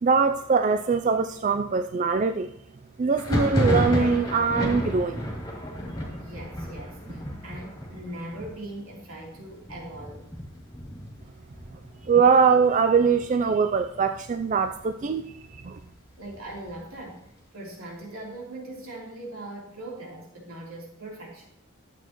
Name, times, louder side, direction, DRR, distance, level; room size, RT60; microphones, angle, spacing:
voice 1, 0.0-2.5 3.0-5.2 12.1-15.2 15.6-15.8, right 5 dB, 35° right, 8 dB, 0.3 m, -22 dB
Thunder, 3.1-12.6 12.9-13.6 13.8-14.8 15.2-16.9, equal, 15° left, 2.7 m, -32 dB
voice 2, 6.1-10.2 16.2-17.2 17.5-21.5, right 1 dB, 80° right, -3 dB, 3.5 m, -40 dB
12.5 x 8.2 x 3.0 m, 0.79 s
head